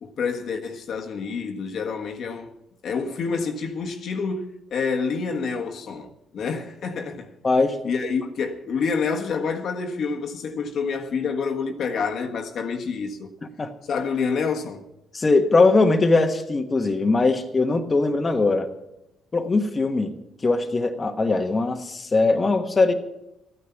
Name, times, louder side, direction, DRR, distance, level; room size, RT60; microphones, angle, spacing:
voice 1, 0.0-2.5 2.8-7.3 7.8-13.3 13.9-14.8, left 5 dB, 65° left, 1.5 m, -28 dB
voice 2, 7.4-7.8 13.6-13.7 15.1-18.7 19.3-20.1 20.4-22.9, left 3 dB, 30° left, 1.2 m, -20 dB
13.5 x 9.7 x 7.0 m
cardioid pair, 90°, 0 cm